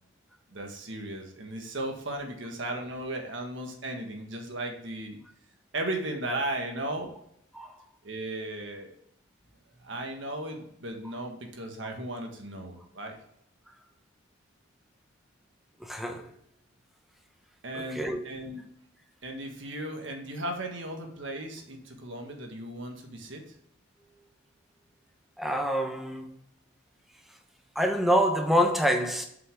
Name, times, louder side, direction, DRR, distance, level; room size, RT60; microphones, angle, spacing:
voice 1, 0.5-5.2 5.7-7.1 8.0-9.0 9.8-13.2 17.6-18.6 19.2-23.4, right 1 dB, 60° right, 1.6 m, -36 dB
voice 2, 15.9-16.2 17.9-18.2 25.4-26.2 27.8-29.2, equal, ahead, 0.9 m, -25 dB
7.7 x 5.7 x 3.6 m
head